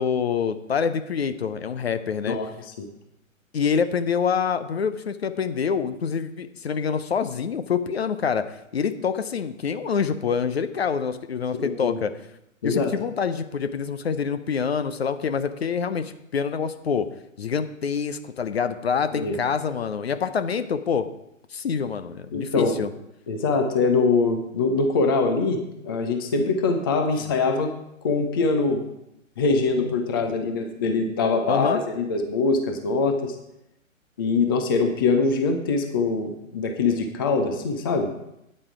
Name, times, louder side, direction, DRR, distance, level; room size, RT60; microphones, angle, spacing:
voice 1, 0.0-2.4 3.5-12.1 12.6-17.1 17.4-21.1 21.5-22.9 30.2-30.3 31.5-31.8, left 6 dB, 50° left, 11 dB, 0.7 m, -26 dB
voice 2, 2.3-2.9 11.6-12.0 12.6-12.9 19.1-19.4 22.3-22.8 23.3-27.7 28.0-28.8 29.4-33.4 34.2-38.1, left 4 dB, 15° left, 5 dB, 0.5 m, -23 dB
9.0 x 8.6 x 4.7 m, 0.84 s
figure-of-eight pair, 130°, 41 cm